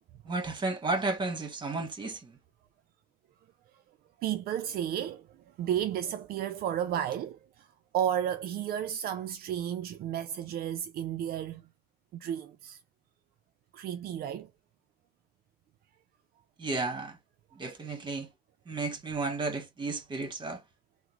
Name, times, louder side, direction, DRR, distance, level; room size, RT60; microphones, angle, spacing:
voice 1, 0.2-2.3 16.6-17.2 17.5-18.3 18.7-20.6, right 3 dB, 25° right, 1.2 m, -33 dB
voice 2, 4.2-5.2 5.6-7.4 7.9-11.6 12.1-12.8 13.7-14.5, right 10 dB, 60° right, 0.4 m, -32 dB
3.6 x 2.0 x 2.9 m
cardioid pair, 110°, 17 cm